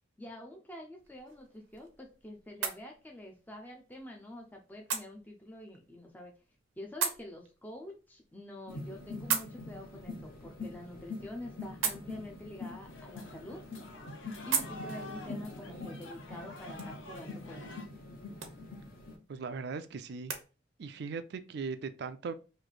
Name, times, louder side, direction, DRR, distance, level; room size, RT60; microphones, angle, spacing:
voice 1, 0.2-6.3 6.8-13.6 14.4-17.9, left 1 dB, 10° left, 0.5 m, -47 dB
sound 1, 1.0-20.4, right 7 dB, 85° right, 0.7 m, -42 dB
sound 2, 8.7-19.1, left 2 dB, 45° left, 0.8 m, -45 dB
sound 3, 12.8-17.8, left 1 dB, 85° left, 0.9 m, -49 dB
voice 2, 19.3-20.3 20.8-22.3, right 4 dB, 55° right, 0.4 m, -39 dB
3.2 x 2.6 x 3.9 m
head